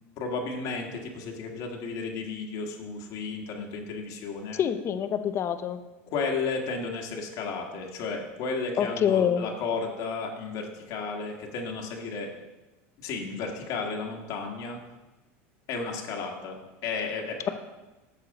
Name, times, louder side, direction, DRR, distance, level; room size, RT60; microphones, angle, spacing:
voice 1, 0.2-4.6 6.1-12.3 13.0-14.8 15.7-17.5, left 4 dB, 60° left, 1 dB, 1.5 m, -33 dB
voice 2, 4.6-5.8 8.8-9.4, left 9 dB, 40° left, 10 dB, 0.7 m, -26 dB
8.8 x 6.5 x 4.1 m, 1.1 s
supercardioid pair, 105°, 7 cm